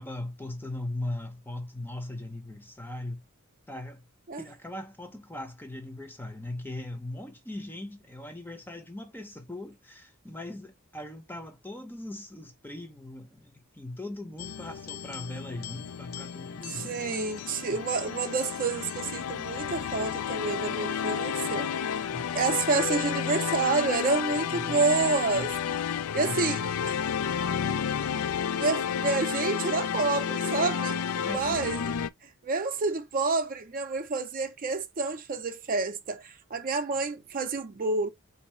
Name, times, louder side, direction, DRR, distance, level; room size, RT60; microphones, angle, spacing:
voice 1, 0.0-3.2 3.7-4.0 4.4-17.0 17.7-17.8 22.1-22.2 24.3-25.5 26.2-26.9 31.2-31.7, left 1 dB, 10° left, 0.7 m, -39 dB
sound 1, 14.4-32.1, left 7 dB, 75° left, 0.4 m, -31 dB
voice 2, 16.7-22.0 22.3-25.5 26.1-27.0 28.5-31.8 32.2-38.1, right 3 dB, 40° right, 0.5 m, -29 dB
4.0 x 2.7 x 4.3 m
head